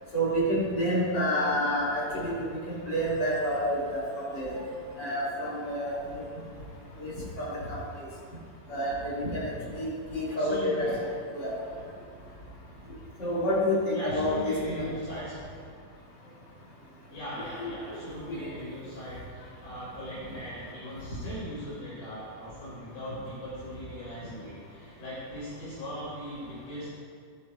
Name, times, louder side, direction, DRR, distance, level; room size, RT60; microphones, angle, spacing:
voice 1, 0.1-4.6 5.0-5.9 7.0-7.1 7.4-7.8 8.7-11.5 13.2-15.2 17.6-17.7 18.4-18.5, equal, 25° left, -9 dB, 2.7 m, -29 dB
voice 2, 10.3-11.0 13.9-15.7 17.1-26.9, equal, 50° left, -10 dB, 4.9 m, -40 dB
14.5 x 11.0 x 2.8 m, 2.2 s
omnidirectional pair, 5.9 m